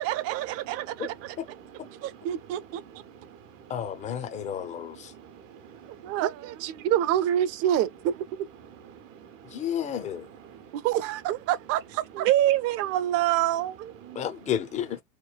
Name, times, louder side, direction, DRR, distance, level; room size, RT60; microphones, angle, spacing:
voice 1, 0.0-1.4 2.0-2.8 6.0-8.4 10.7-14.3, right 12 dB, 40° right, 0.4 m, -27 dB
voice 2, 1.2-2.3 2.9-3.6 4.3-6.1 8.9-9.9 10.4-10.7 14.1-14.2, right 8 dB, 85° right, 0.8 m, -49 dB
voice 3, 3.7-5.1 9.5-10.3 14.2-15.0, left 9 dB, 20° left, 0.3 m, -31 dB
3.0 x 2.2 x 2.2 m
hypercardioid pair, 95°, 38 cm